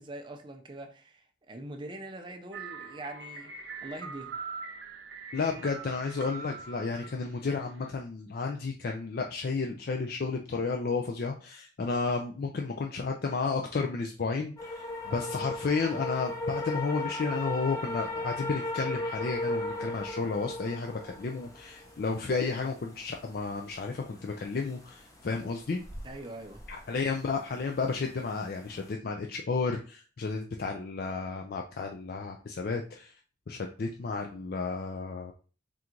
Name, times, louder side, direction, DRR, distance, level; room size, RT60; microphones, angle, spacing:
voice 1, 0.0-4.4 15.0-15.3 26.0-26.6, right 1 dB, 25° right, 0.6 m, -43 dB
sound 1, 2.5-7.9, right 5 dB, 75° right, 0.7 m, -43 dB
voice 2, 5.3-25.8 26.7-33.1 33.5-35.3, left 4 dB, 55° left, 0.4 m, -32 dB
sound 2, 14.6-28.9, left 2 dB, 20° left, 0.8 m, -38 dB
3.8 x 2.5 x 4.4 m
head